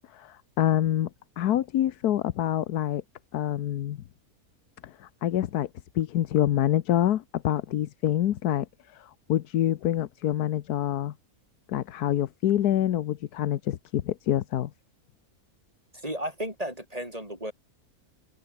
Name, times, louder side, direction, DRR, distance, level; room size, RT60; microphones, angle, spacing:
voice 1, 0.1-1.1 1.4-3.0 3.3-4.0 4.8-5.7 5.9-11.1 11.7-14.7, left 12 dB, 90° left, 1.4 m, -26 dB
voice 2, 15.9-17.5, equal, 25° right, 5.9 m, -34 dB
omnidirectional pair, 1.6 m